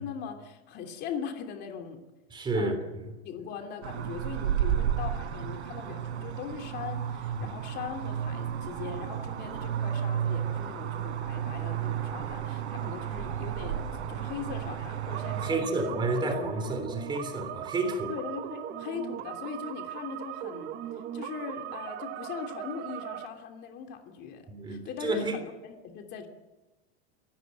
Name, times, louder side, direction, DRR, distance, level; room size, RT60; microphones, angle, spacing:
voice 1, 0.0-2.0 2.5-2.8 3.2-16.0 16.3-16.5 18.1-26.3, left 7 dB, 30° left, 2.9 m, -40 dB
voice 2, 2.3-3.1 7.4-7.5 15.4-18.1 24.5-25.4, right 2 dB, 15° right, 3.4 m, -31 dB
sound 1, 3.8-15.5, right 9 dB, 85° right, 4.6 m, -32 dB
sound 2, 15.1-23.3, right 11 dB, 30° right, 1.3 m, -39 dB
23.0 x 18.0 x 9.4 m
supercardioid pair, 160°, 33 cm